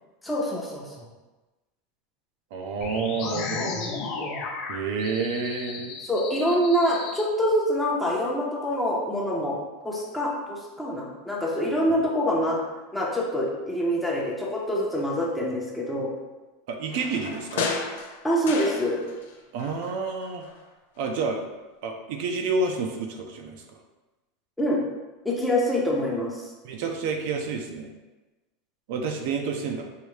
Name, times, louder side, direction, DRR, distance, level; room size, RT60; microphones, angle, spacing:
voice 1, 0.2-1.0 4.2-4.4 6.0-9.6 9.8-12.6 12.9-16.1 18.2-19.0 24.6-24.8 25.2-26.4, equal, 5° left, -4 dB, 0.8 m, -25 dB
voice 2, 2.5-3.8 4.7-6.0 11.9-12.0 16.7-17.7 19.5-20.5 21.0-21.5 21.8-23.8 26.6-27.9 28.9-29.9, right 4 dB, 60° right, 3 dB, 0.5 m, -29 dB
sound 1, 2.8-7.2, left 4 dB, 40° left, 0.6 m, -34 dB
sound 2, 16.9-19.3 19.6-20.7 21.0-21.1, left 5 dB, 85° left, 0.6 m, -33 dB
4.9 x 2.7 x 3.2 m, 1.1 s
supercardioid pair, 150°, 0 cm